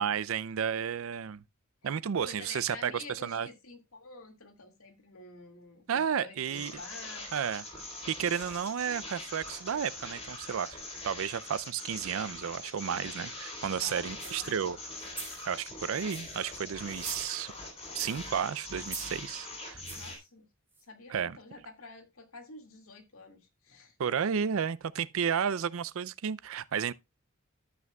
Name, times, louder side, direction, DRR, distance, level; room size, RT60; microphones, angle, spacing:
voice 1, 0.0-1.4 1.8-2.9 3.2-3.5 5.9-6.7 7.3-7.6 8.1-10.8 11.0-14.8 15.4-17.5 17.9-19.8 21.1-21.4 24.0-26.9, right 7 dB, 70° right, 0.4 m, -32 dB
voice 2, 2.2-7.3 13.7-14.7 19.9-20.5 20.8-24.0, left 3 dB, 90° left, 2.1 m, -49 dB
sound 1, 6.5-20.2, left 2 dB, 30° left, 3.6 m, -43 dB
sound 2, 14.1-14.5 15.0-15.4 15.9-16.4 16.9-17.6 18.0-18.3 18.8-19.2 19.8-20.2 20.7-20.8, right 3 dB, 10° right, 2.5 m, -44 dB
12.0 x 8.2 x 2.3 m
head